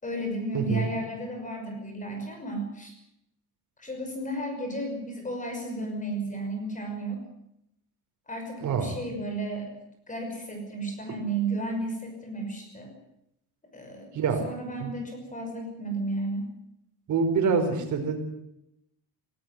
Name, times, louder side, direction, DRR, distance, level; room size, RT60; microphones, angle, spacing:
voice 1, 0.0-2.9 3.8-7.2 8.3-9.7 10.1-12.9 13.7-14.1 14.4-16.5, right 2 dB, 20° left, 4 dB, 5.9 m, -33 dB
voice 2, 0.5-0.9 8.6-8.9 14.1-14.5 14.8-14.9 17.1-18.2, right 5 dB, 50° right, 5 dB, 5.1 m, -25 dB
18.0 x 18.0 x 9.5 m, 0.80 s
cardioid pair, 140°, 38 cm